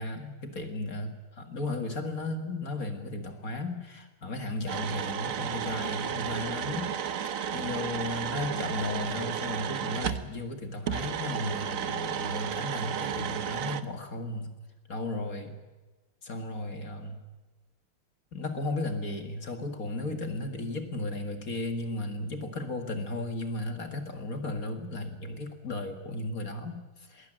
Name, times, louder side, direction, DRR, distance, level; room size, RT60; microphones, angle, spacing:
voice 1, 0.0-6.9 7.2-14.5 14.9-15.6 16.2-17.2 18.3-27.3, left 2 dB, 45° left, 6 dB, 2.1 m, -35 dB
sound 1, 4.7-10.3 10.9-13.8, right 8 dB, 55° right, 1.0 m, -33 dB
21.0 x 19.0 x 9.0 m, 1.2 s
omnidirectional pair, 2.3 m